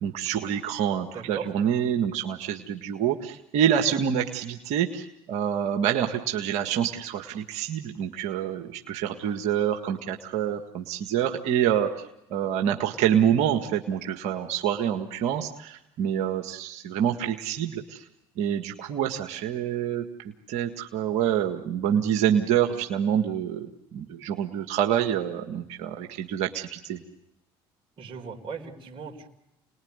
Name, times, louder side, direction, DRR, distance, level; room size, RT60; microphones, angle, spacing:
voice 1, 0.0-18.0 18.4-27.0, right 9 dB, 70° right, 4 dB, 1.8 m, -27 dB
voice 2, 1.1-1.5 28.0-29.3, right 6 dB, 50° right, 2 dB, 4.5 m, -37 dB
29.5 x 20.5 x 9.7 m, 0.93 s
supercardioid pair, 80°, 12 cm